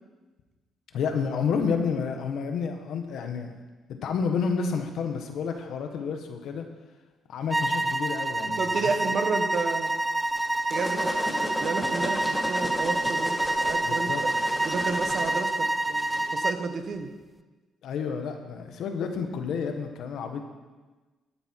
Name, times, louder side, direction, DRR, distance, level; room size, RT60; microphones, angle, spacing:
voice 1, 0.9-3.5 4.0-6.6 7.3-8.7 13.8-14.2 17.8-20.4, left 6 dB, 75° left, 5 dB, 1.4 m, -30 dB
sound 1, 7.5-16.6, right 2 dB, 15° right, 0.5 m, -27 dB
voice 2, 8.6-9.9 10.7-13.4 13.6-14.1 14.6-17.1, right 4 dB, 55° right, 6 dB, 1.3 m, -31 dB
sound 2, 10.3-16.2, left 1 dB, 15° left, 2.3 m, -35 dB
13.0 x 9.2 x 4.7 m, 1.3 s
cardioid pair, 90°, 0 cm